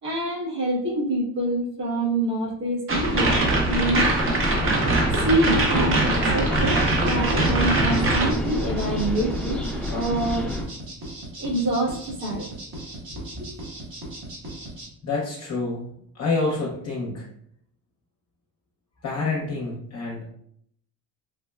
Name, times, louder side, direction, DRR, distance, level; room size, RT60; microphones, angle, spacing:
voice 1, 0.0-4.1 5.2-9.6 9.9-10.5 11.4-12.5 13.4-13.6, right 1 dB, 80° right, -5 dB, 1.2 m, -26 dB
sound 1, 2.9-8.3, right 2 dB, 30° right, 0.6 m, -23 dB
sound 2, 3.0-10.6, equal, 5° left, 0.3 m, -27 dB
sound 3, 6.7-14.9, right 1 dB, 60° right, 1.3 m, -37 dB
voice 2, 15.0-15.9 16.1-17.3 19.0-20.3, left 3 dB, 40° left, -4 dB, 0.6 m, -27 dB
3.3 x 2.1 x 2.2 m, 0.69 s
cardioid pair, 90°, 41 cm